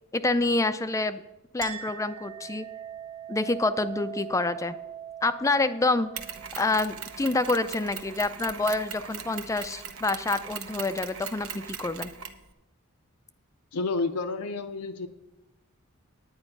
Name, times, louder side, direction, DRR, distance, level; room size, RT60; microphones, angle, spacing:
voice 1, 0.1-1.2 1.5-2.7 3.3-4.8 5.2-6.1 6.6-12.1, left 2 dB, 15° left, 12 dB, 0.4 m, -27 dB
Chink clink, 1.6-8.7, right 9 dB, 35° right, 2.0 m, -42 dB
Mechanisms, 6.2-12.4, right 7 dB, 70° right, 1.0 m, -40 dB
voice 2, 13.7-15.1, left 3 dB, 90° left, 4 dB, 0.6 m, -30 dB
9.7 x 9.3 x 5.3 m, 1.0 s
head